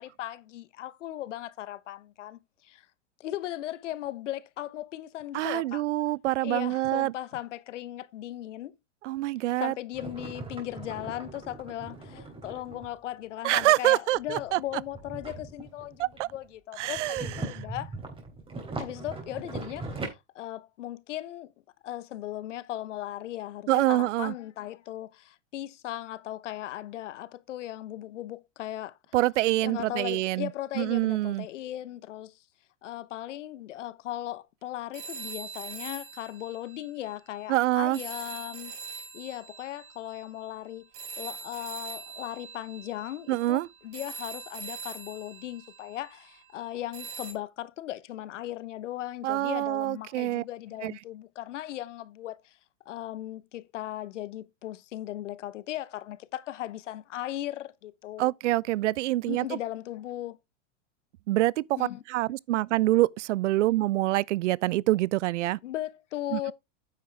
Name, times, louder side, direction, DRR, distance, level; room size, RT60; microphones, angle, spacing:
voice 1, 0.0-2.9 3.2-5.8 6.4-8.7 9.6-17.9 18.8-21.5 21.8-29.0 29.6-32.4 32.8-40.9 41.2-52.6 52.9-58.3 59.3-60.4 61.8-62.0 65.6-66.5, left 13 dB, 75° left, 1.0 m, -37 dB
voice 2, 5.3-7.1 9.0-9.7 13.4-14.6 16.0-16.3 16.8-17.6 23.7-24.3 29.1-30.5 30.8-31.5 37.5-38.0 43.3-43.7 49.2-50.4 50.8-50.9 58.2-59.5 61.3-65.6 66.3-66.5, right 16 dB, 75° right, 0.5 m, -26 dB
sound 1, 9.9-12.9 14.1-16.4 16.8-20.1, right 3 dB, 15° right, 3.5 m, -40 dB
sound 2, 34.9-37.4 37.9-46.4 46.9-47.3, right 5 dB, 50° right, 5.7 m, -43 dB
9.4 x 7.5 x 3.4 m
hypercardioid pair, 125°, 36 cm